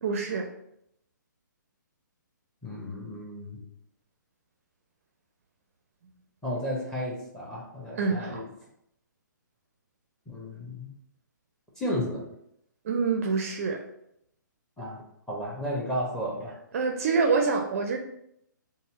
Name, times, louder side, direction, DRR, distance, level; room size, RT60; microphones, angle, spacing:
voice 1, 0.0-0.5 8.0-8.5 12.8-13.8 16.7-18.0, right 4 dB, 45° right, 4 dB, 0.4 m, -26 dB
voice 2, 2.6-3.6 6.4-8.5 10.3-10.9 11.8-12.2 14.8-16.5, equal, 5° left, -3 dB, 0.9 m, -33 dB
4.2 x 2.0 x 4.0 m, 0.76 s
figure-of-eight pair, 130°, 10 cm